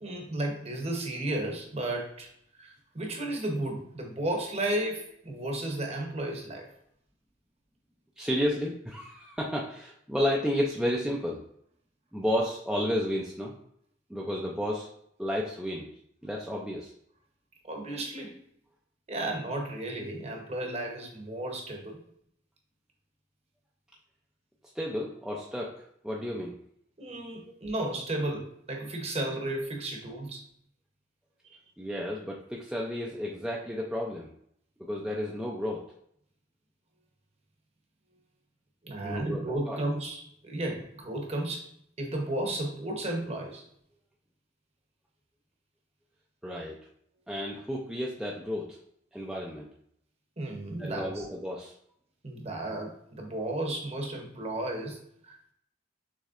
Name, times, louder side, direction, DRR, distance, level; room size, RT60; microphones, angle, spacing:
voice 1, 0.0-2.3 2.6-6.7 17.6-18.4 19.1-22.0 27.0-30.4 38.8-41.7 42.0-43.6 50.4-51.2 52.2-55.0 55.3-55.5, right 1 dB, 30° right, 2 dB, 0.8 m, -33 dB
voice 2, 8.2-11.4 12.1-13.5 14.1-14.9 15.2-15.9 16.2-16.9 24.8-26.6 31.8-34.3 34.8-35.8 39.0-39.8 46.4-46.8 47.3-48.8 49.1-49.7 50.8-51.7, equal, ahead, -4 dB, 0.4 m, -32 dB
6.3 x 3.2 x 2.4 m, 0.68 s
head